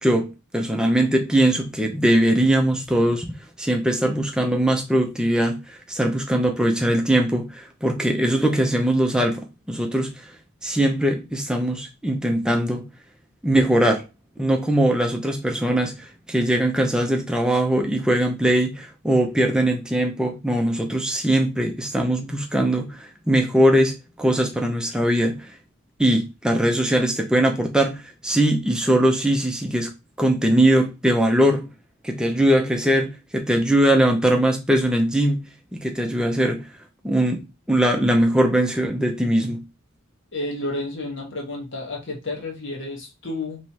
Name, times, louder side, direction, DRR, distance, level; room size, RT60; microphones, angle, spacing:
voice 1, 0.0-3.3 3.6-10.2 10.6-12.9 13.4-14.0 14.4-25.5 26.0-29.9 30.2-31.7 32.0-35.5 35.7-36.7 37.0-39.6, right 1 dB, 5° right, 0.6 m, -21 dB
voice 2, 40.3-43.6, left 2 dB, 60° left, 1.0 m, -31 dB
3.4 x 3.1 x 2.8 m
head